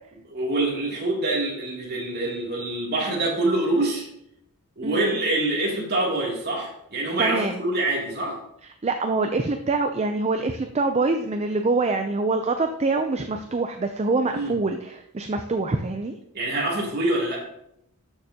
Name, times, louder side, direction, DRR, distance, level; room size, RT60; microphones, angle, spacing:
voice 1, 0.3-4.1 4.8-8.4 14.3-14.6 16.3-17.4, right 2 dB, 45° right, -3 dB, 2.8 m, -25 dB
voice 2, 4.8-5.2 7.2-7.6 8.8-16.2, right 3 dB, 30° right, 6 dB, 0.5 m, -25 dB
12.5 x 6.8 x 2.9 m, 0.76 s
head